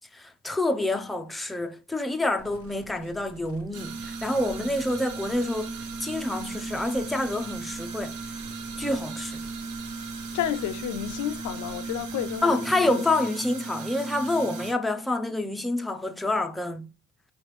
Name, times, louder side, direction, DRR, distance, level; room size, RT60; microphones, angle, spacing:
voice 1, 0.1-8.4 8.8-9.4 12.4-16.9, left 2 dB, ahead, 0.4 m, -28 dB
sound 1, 2.4-12.4, right 2 dB, 50° right, 1.0 m, -49 dB
sound 2, 3.7-14.7, right 4 dB, 85° right, 0.9 m, -36 dB
voice 2, 10.3-13.0, left 11 dB, 75° left, 0.5 m, -31 dB
5.0 x 3.2 x 3.1 m
cardioid pair, 90°, 30 cm